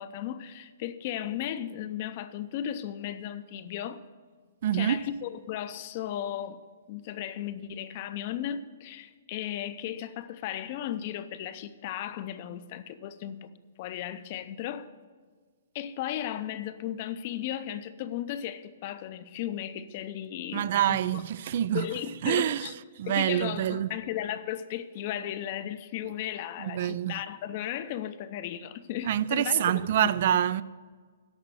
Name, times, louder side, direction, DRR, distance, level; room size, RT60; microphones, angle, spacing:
voice 1, 0.0-4.0 4.7-6.6 6.9-13.5 13.8-14.9 15.7-21.2 21.7-22.7 23.1-30.1, left 11 dB, 40° left, 0.6 m, -35 dB
voice 2, 4.6-5.0 20.5-21.9 22.2-22.7 23.0-23.9 26.6-27.2 29.0-30.6, right 11 dB, 50° right, 0.3 m, -26 dB
10.5 x 6.6 x 7.8 m
hypercardioid pair, 155°, 0 cm